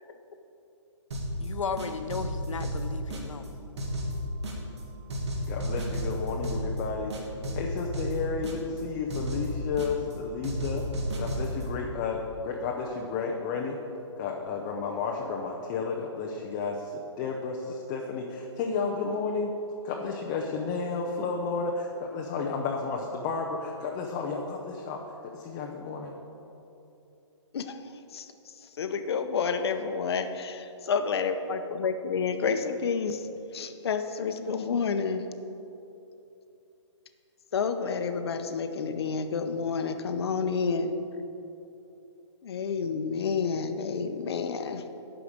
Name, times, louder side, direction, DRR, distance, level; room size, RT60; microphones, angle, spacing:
sound 1, 1.1-1.5 1.8-3.5 3.8-4.8 5.1-6.8 7.1-8.8 9.1-10.1 10.4-11.6, equal, 60° right, 2.2 m, -32 dB
voice 1, 1.4-3.5, left 5 dB, 85° left, 9 dB, 0.8 m, -35 dB
voice 2, 5.5-7.1 7.5-10.8 11.2-13.8 14.2-19.5 19.8-26.2, left 4 dB, 15° left, 0 dB, 0.5 m, -32 dB
voice 3, 28.1-33.2 33.5-35.2 37.5-40.9 42.4-44.8, left 5 dB, 55° left, 8 dB, 0.7 m, -29 dB
11.0 x 4.9 x 7.1 m, 2.9 s
hypercardioid pair, 160°, 16 cm